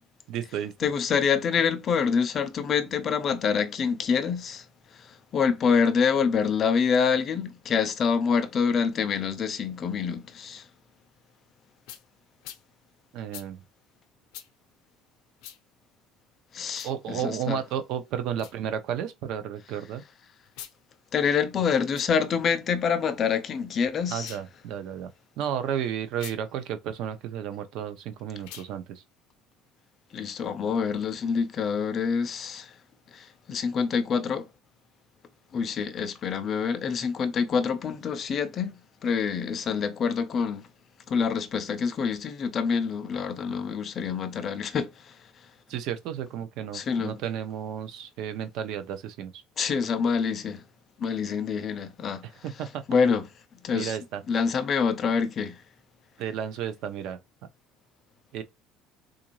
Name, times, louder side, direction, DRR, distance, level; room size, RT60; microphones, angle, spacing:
voice 1, 0.3-0.7 13.1-13.6 16.8-20.0 24.1-25.1 25.4-29.0 45.7-49.4 52.4-52.8 53.7-54.2 56.2-57.2 58.3-58.4, right 9 dB, 55° right, 0.6 m, -32 dB
voice 2, 0.8-4.7 4.9-10.7 16.5-17.6 21.1-24.4 30.1-32.7 33.1-34.5 35.5-40.7 41.1-45.2 46.7-47.2 49.6-50.6 51.0-52.3 52.9-53.3 53.6-54.0 54.3-55.6, left 6 dB, 30° left, 0.4 m, -26 dB
sound 1, 11.9-12.0 12.4-12.6 13.3-13.5 14.3-14.5 15.4-15.6 16.7-16.9 18.3-18.6 20.5-20.8 21.8-22.1 24.1-24.5 26.1-26.4 28.4-28.7, left 11 dB, 85° left, 0.5 m, -44 dB
3.8 x 2.5 x 2.9 m
cardioid pair, 180°, 0 cm